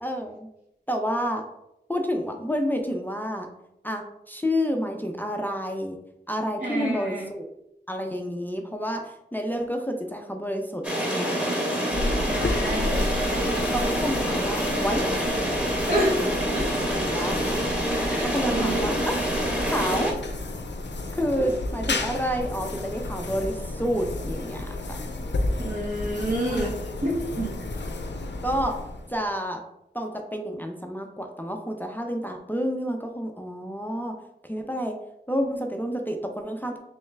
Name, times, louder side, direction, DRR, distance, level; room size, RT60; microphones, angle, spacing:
voice 1, 0.0-0.5 0.9-1.4 1.9-3.5 3.8-6.0 6.3-7.5 7.9-11.6 13.7-15.1 16.9-17.6 18.2-19.3 19.7-20.1 21.1-25.0 26.5-26.7 28.4-28.7 29.1-29.6 29.9-34.2 34.4-34.9 35.3-36.8, equal, 10° left, 2 dB, 0.4 m, -29 dB
voice 2, 6.6-7.3 12.1-13.6 15.8-16.7 17.9-19.0 25.6-26.7 27.0-27.5, right 1 dB, 50° right, -6 dB, 1.0 m, -29 dB
sound 1, 10.8-20.1, right 1 dB, 10° right, 1.0 m, -26 dB
sound 2, 11.9-29.3, left 2 dB, 85° left, 0.5 m, -32 dB
3.4 x 3.2 x 3.3 m, 0.84 s
wide cardioid pair, 65°, 18 cm